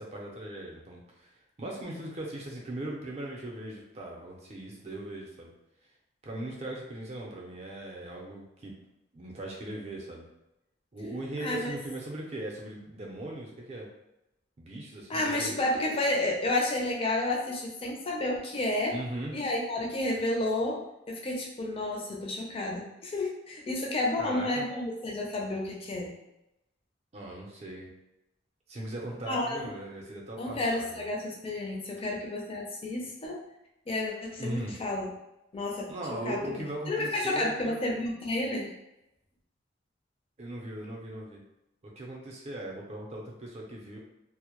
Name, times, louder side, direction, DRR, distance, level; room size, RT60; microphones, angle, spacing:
voice 1, 0.0-5.5 6.2-8.8 9.1-10.2 10.9-13.9 14.6-15.5 18.9-19.3 24.2-24.7 27.1-27.9 28.7-31.1 34.4-34.8 35.9-37.8 40.4-41.4 41.8-44.0, right 1 dB, 35° right, -2 dB, 0.5 m, -39 dB
voice 2, 11.4-11.7 15.1-18.9 19.3-26.1 29.3-29.7 30.4-33.4 33.9-35.1 35.5-35.8 36.2-38.7, left 2 dB, 30° left, -1 dB, 0.4 m, -31 dB
2.1 x 2.0 x 2.9 m, 0.89 s
head